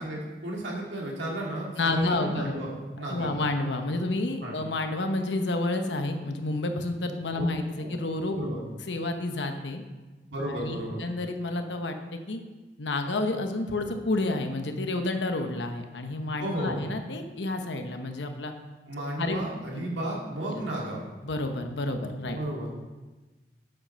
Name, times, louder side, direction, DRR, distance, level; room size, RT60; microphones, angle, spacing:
voice 1, 0.0-3.3 4.4-4.6 7.3-7.5 7.8-7.9 8.3-8.6 10.3-11.0 16.4-16.8 18.9-21.0 22.3-22.7, right 1 dB, 85° right, -2 dB, 2.4 m, -33 dB
voice 2, 1.8-2.6 3.1-8.4 8.9-9.8 10.5-12.4 12.8-18.5 19.2-19.4 19.7-19.9 20.5-20.6 21.2-22.4, left 2 dB, 85° left, 6 dB, 1.0 m, -30 dB
7.9 x 7.3 x 5.7 m, 1.2 s
head